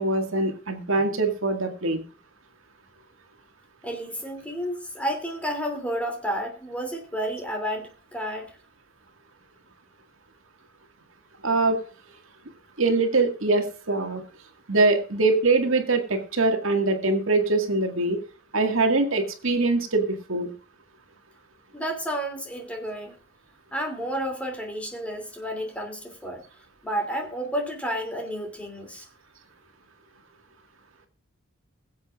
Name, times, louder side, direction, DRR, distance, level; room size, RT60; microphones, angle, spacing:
voice 1, 0.0-2.0 11.4-11.8 12.8-14.2 14.7-18.2 18.5-20.5, right 3 dB, 65° right, 4 dB, 1.9 m, -23 dB
voice 2, 3.8-8.5 21.7-23.2 23.7-26.4 26.8-29.1, equal, 5° left, 3 dB, 2.8 m, -31 dB
22.0 x 7.8 x 2.5 m, 0.38 s
head